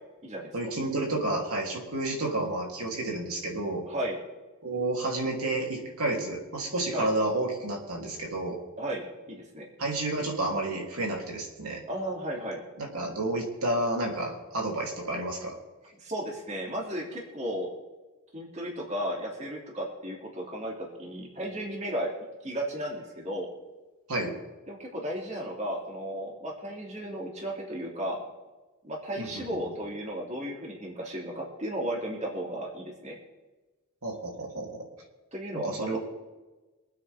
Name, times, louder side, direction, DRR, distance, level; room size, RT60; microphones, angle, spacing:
voice 1, 0.5-3.8 4.6-8.6 9.8-11.8 12.8-15.6 24.1-24.3 29.2-29.4 34.0-34.8 35.5-36.0, right 2 dB, 85° right, -1 dB, 3.3 m, -30 dB
voice 2, 3.9-4.2 6.9-7.1 8.8-9.7 11.9-12.6 16.0-17.7 18.3-22.1 22.4-23.5 24.7-28.2 28.8-33.2 35.3-36.0, right 1 dB, 30° right, -2 dB, 2.8 m, -34 dB
24.5 x 9.2 x 3.6 m, 1.2 s
head